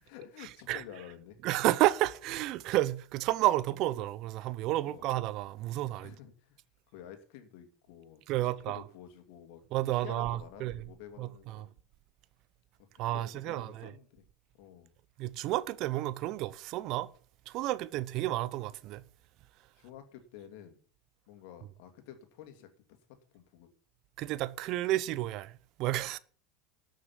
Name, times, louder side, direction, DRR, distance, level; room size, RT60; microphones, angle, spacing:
voice 1, 0.0-1.4 4.8-5.1 6.0-6.6 6.9-11.7 12.8-12.9 13.1-14.3 14.6-14.9 19.7-20.8 21.3-22.7 23.3-23.7, left 10 dB, 65° left, 2.6 m, -50 dB
voice 2, 1.4-6.1 8.3-8.8 9.7-10.8 11.2-11.7 13.0-13.9 15.2-17.1 17.5-19.0 24.2-26.2, right 15 dB, 55° right, 0.7 m, -31 dB
13.0 x 6.6 x 7.3 m
hypercardioid pair, 85°, 0 cm